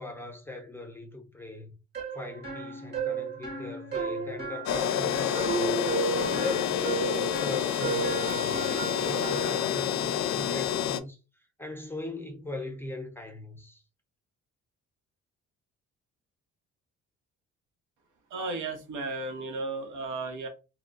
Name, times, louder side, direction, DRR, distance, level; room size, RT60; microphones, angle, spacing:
voice 1, 0.0-1.7 2.1-5.9 6.3-11.2 11.6-13.8, left 2 dB, 5° left, 0.7 m, -39 dB
sound 1, 1.9-9.6, right 4 dB, 35° right, 1.0 m, -33 dB
sound 2, 4.7-11.0, left 10 dB, 65° left, 0.4 m, -28 dB
voice 2, 18.3-20.5, right 3 dB, 80° right, 0.9 m, -34 dB
2.3 x 2.2 x 3.8 m
cardioid pair, 90°, 30 cm